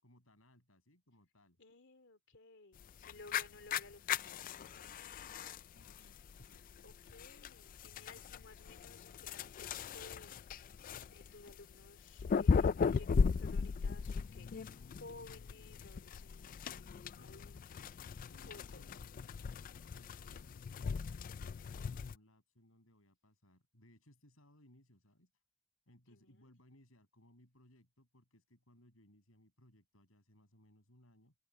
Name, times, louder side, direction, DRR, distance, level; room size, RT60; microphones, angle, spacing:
voice 1, 0.0-1.6 5.7-6.7 17.2-17.4 18.3-25.3 25.9-31.3, left 1 dB, 75° left, 7.8 m, -66 dB
voice 2, 1.6-5.3 6.8-18.0 18.5-18.8 21.8-21.9 26.1-26.5, left 3 dB, 60° left, 2.7 m, -57 dB
sound 1, 2.8-22.2, left 5 dB, 40° left, 0.3 m, -38 dB
open air
head